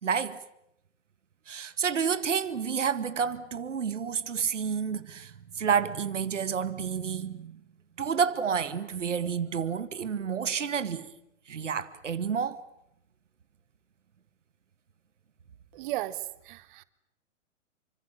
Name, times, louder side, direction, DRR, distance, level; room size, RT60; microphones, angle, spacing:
voice 1, 0.0-0.4 1.5-7.6 8.0-11.1 11.5-12.6, right 7 dB, 75° right, 2.0 m, -30 dB
voice 2, 15.7-16.8, right 15 dB, 40° right, 1.6 m, -35 dB
29.5 x 25.5 x 7.4 m
figure-of-eight pair, 115°, 37 cm